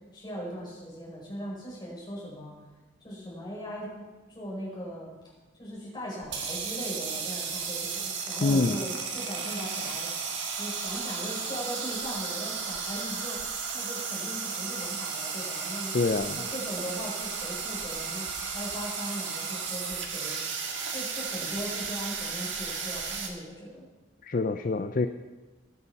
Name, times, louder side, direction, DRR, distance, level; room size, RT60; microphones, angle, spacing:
voice 1, 0.1-2.5 3.0-5.1 5.6-10.1 10.6-15.9 16.3-20.4 20.9-23.8, equal, 20° left, -5 dB, 5.4 m, -39 dB
sound 1, 6.2-23.3, right 5 dB, 70° right, 1.8 m, -34 dB
voice 2, 8.4-8.8 15.9-16.4 24.2-25.1, left 3 dB, 40° left, 9 dB, 0.4 m, -26 dB
19.0 x 7.0 x 5.8 m, 1.2 s
head